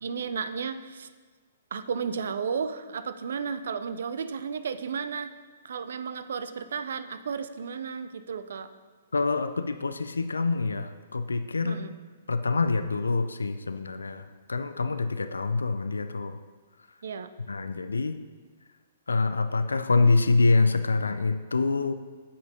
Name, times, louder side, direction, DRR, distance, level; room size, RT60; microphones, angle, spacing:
voice 1, 0.0-1.1 1.7-5.3 5.6-8.7 11.6-12.0 17.0-17.3, right 6 dB, 65° right, 12 dB, 0.5 m, -33 dB
voice 2, 9.1-11.8 12.3-16.4 17.5-18.2 19.1-21.9, left 3 dB, 85° left, 10 dB, 0.4 m, -26 dB
15.0 x 5.4 x 2.8 m, 1.4 s
figure-of-eight pair, 120°, 0 cm